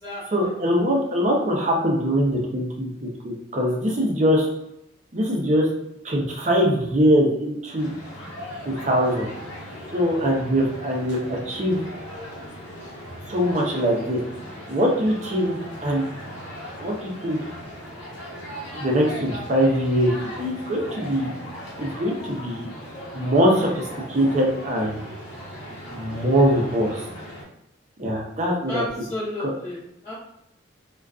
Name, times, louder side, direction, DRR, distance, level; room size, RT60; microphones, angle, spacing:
voice 1, 0.3-4.5 5.1-5.7 6.0-7.9 8.7-9.3 9.9-11.8 13.3-14.2 14.7-16.1 16.8-17.4 18.7-21.3 21.8-22.7 23.1-25.0 25.9-27.0 28.0-28.8 29.4-29.5, equal, 35° right, -1 dB, 0.5 m, -22 dB
sound 1, 7.8-27.4, equal, 65° left, 0.8 m, -38 dB
voice 2, 28.7-30.1, left 1 dB, 15° left, -12 dB, 0.7 m, -32 dB
2.4 x 2.2 x 2.3 m, 0.81 s
head